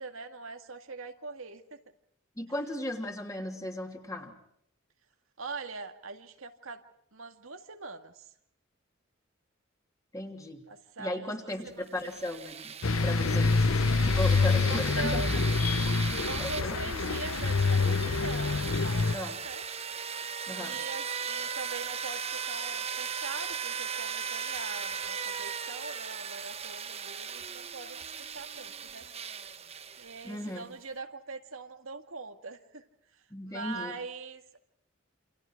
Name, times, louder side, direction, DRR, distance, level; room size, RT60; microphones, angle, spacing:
voice 1, 0.0-1.8 5.4-6.8 7.1-8.3 10.7-12.2 14.6-15.3 16.2-19.7 20.6-29.1 30.0-32.8 33.5-34.6, right 3 dB, 80° right, 6 dB, 2.0 m, -42 dB
voice 2, 2.4-4.3 10.1-10.6 11.0-12.7 13.0-13.6 14.0-15.4 16.4-16.7 19.1-19.4 20.5-20.8 30.2-30.6 33.3-33.9, left 1 dB, 15° left, 3 dB, 3.0 m, -36 dB
sound 1, 11.9-30.5, right 7 dB, 30° right, 1.1 m, -38 dB
sound 2, 12.8-19.2, left 4 dB, 90° left, 0.9 m, -26 dB
29.0 x 27.5 x 4.8 m, 0.70 s
head